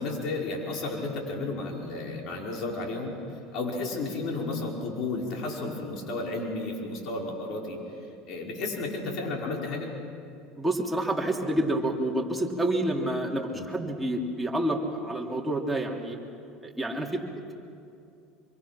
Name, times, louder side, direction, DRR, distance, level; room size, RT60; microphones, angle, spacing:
voice 1, 0.0-3.2 3.5-7.8 8.3-9.9 13.5-13.7, left 3 dB, 55° left, 0 dB, 5.1 m, -32 dB
voice 2, 10.6-16.2 16.6-17.5, right 1 dB, 5° right, -1 dB, 3.3 m, -28 dB
25.5 x 24.0 x 6.0 m, 2.5 s
hypercardioid pair, 90°, 0 cm